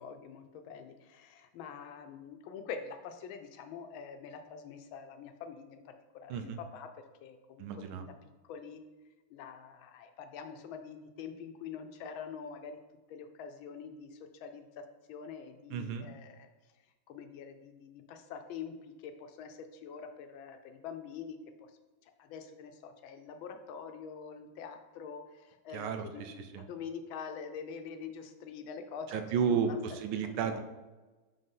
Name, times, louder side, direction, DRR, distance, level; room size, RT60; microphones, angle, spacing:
voice 1, 0.0-6.9 7.2-8.8 9.3-12.8 13.1-16.5 17.1-29.8 30.4-30.6, left 6 dB, 80° left, 7 dB, 1.4 m, -45 dB
voice 2, 7.6-8.0 15.7-16.1 25.7-26.6 29.1-30.6, right 7 dB, 85° right, 7 dB, 1.5 m, -33 dB
5.4 x 3.8 x 5.4 m, 1.2 s
omnidirectional pair, 2.3 m